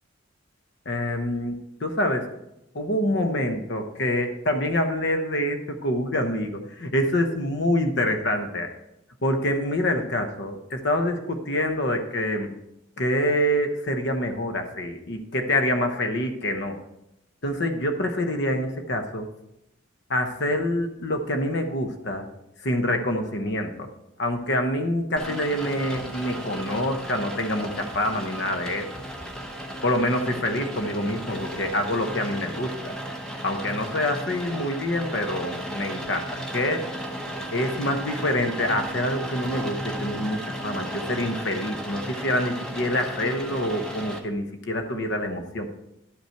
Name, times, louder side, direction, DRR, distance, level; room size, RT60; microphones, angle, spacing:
voice 1, 0.9-2.3 2.7-8.7 9.2-12.5 13.0-16.8 17.4-19.3 20.1-22.3 22.6-23.9 24.2-28.9 29.8-32.9 33.4-37.0 37.5-45.7, left 1 dB, 55° left, 6 dB, 0.8 m, -26 dB
Rain, 25.2-44.2, equal, 5° left, 0.9 m, -35 dB
11.5 x 5.6 x 4.5 m, 0.86 s
head